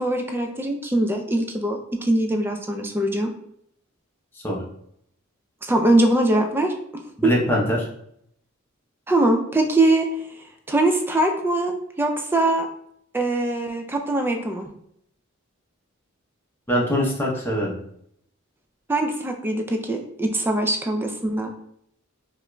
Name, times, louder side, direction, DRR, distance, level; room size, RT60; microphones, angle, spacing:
voice 1, 0.0-3.3 5.6-6.7 7.2-7.3 9.1-10.1 10.7-12.7 13.1-14.7 18.9-21.5, right 1 dB, 10° right, 4 dB, 0.3 m, -22 dB
voice 2, 7.2-7.8 16.7-17.7, equal, 10° left, -4 dB, 0.7 m, -22 dB
4.8 x 2.5 x 2.2 m, 0.71 s
head